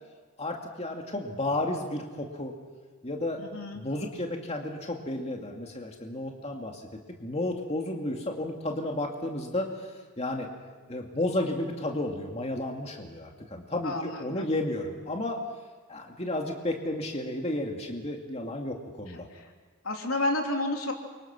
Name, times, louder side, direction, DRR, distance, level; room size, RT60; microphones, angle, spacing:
voice 1, 0.4-2.5 3.0-3.4 3.7-6.8 7.2-9.7 10.2-10.5 10.9-15.4 15.9-19.3, left 1 dB, 30° left, 1 dB, 2.3 m, -32 dB
voice 2, 3.4-3.8 13.8-14.5 19.1-19.5 19.8-20.9, left 2 dB, 85° left, 2 dB, 3.4 m, -31 dB
28.5 x 25.0 x 6.1 m, 1.4 s
head